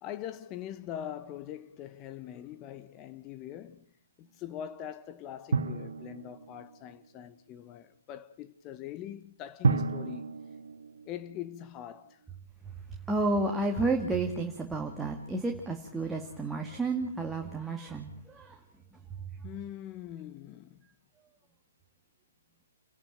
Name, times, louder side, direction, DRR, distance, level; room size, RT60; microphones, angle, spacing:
voice 1, 0.0-3.8 4.2-10.5 11.0-12.2 19.4-20.9, left 11 dB, 25° left, 1.2 m, -42 dB
Drum, 5.5-7.0 9.6-11.8, right 4 dB, 70° right, 1.8 m, -32 dB
voice 2, 13.1-18.6, right 2 dB, 5° right, 2.2 m, -31 dB
30.0 x 11.0 x 9.1 m
figure-of-eight pair, 135°, 0 cm